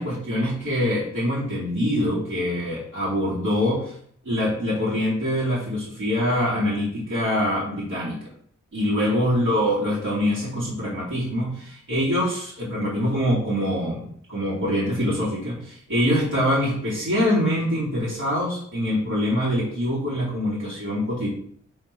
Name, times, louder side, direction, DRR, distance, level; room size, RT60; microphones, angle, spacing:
voice 1, 0.0-3.9 4.2-8.3 8.7-21.3, equal, 75° right, -8 dB, 2.8 m, -24 dB
7.6 x 3.2 x 5.3 m, 0.63 s
cardioid pair, 60°, 31 cm